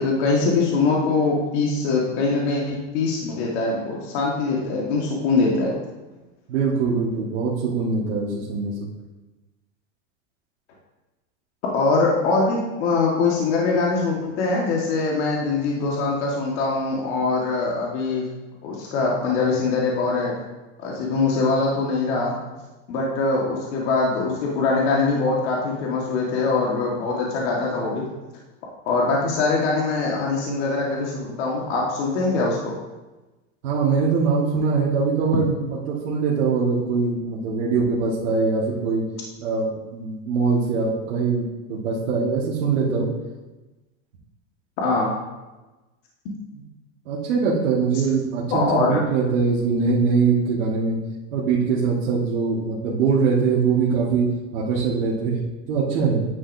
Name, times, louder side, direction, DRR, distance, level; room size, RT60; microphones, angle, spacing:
voice 1, 0.0-5.8 11.7-18.3 18.6-20.3 20.8-22.3 22.9-28.0 28.9-32.7 44.8-45.1 46.3-46.4 48.5-49.0, left 3 dB, 60° left, -2 dB, 1.7 m, -22 dB
voice 2, 6.5-8.9 33.6-39.0 39.4-43.1 47.1-51.0 51.3-54.3 54.5-55.4 55.7-56.3, right 5 dB, 75° right, -6 dB, 1.8 m, -22 dB
9.7 x 6.3 x 2.7 m, 1.1 s
supercardioid pair, 130°, 39 cm